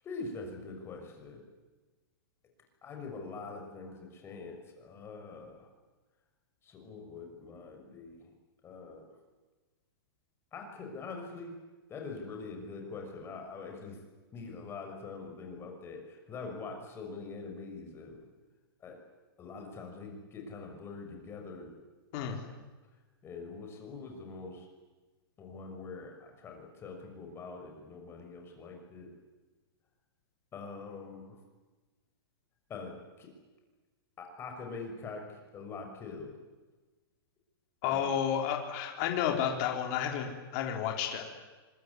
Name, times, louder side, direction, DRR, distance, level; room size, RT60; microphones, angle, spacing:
voice 1, 0.0-1.4 2.8-5.7 6.6-8.3 8.6-9.1 10.5-11.6 11.9-14.0 14.3-18.2 18.8-19.0 19.4-21.8 22.1-22.4 23.2-24.7 25.4-29.1 30.5-31.4 32.7-33.3 34.2-36.3 37.8-38.1, left 4 dB, 20° left, 2 dB, 6.0 m, -44 dB
voice 2, 37.8-41.2, left 9 dB, 40° left, 2 dB, 4.1 m, -31 dB
24.5 x 22.5 x 9.8 m, 1.3 s
hypercardioid pair, 150°, 13 cm